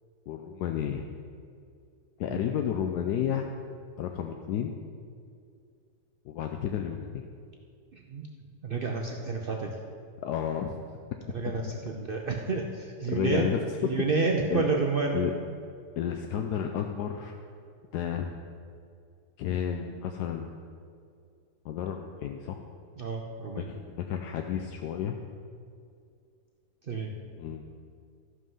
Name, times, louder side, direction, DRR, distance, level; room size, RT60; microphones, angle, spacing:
voice 1, 0.3-1.0 2.2-3.5 4.0-4.7 6.3-7.3 10.2-10.8 13.1-13.9 14.5-14.6 15.1-15.3 16.0-17.3 17.9-18.3 19.4-20.5 21.6-22.7 23.5-25.2 27.4-27.6, left 9 dB, 75° left, 4 dB, 1.1 m, -31 dB
voice 2, 7.9-8.3 8.6-9.8 11.3-13.5 13.8-15.2 23.0-23.7 26.9-27.1, right 4 dB, 85° right, 1 dB, 0.4 m, -30 dB
14.0 x 5.6 x 5.5 m, 2.3 s
omnidirectional pair, 1.9 m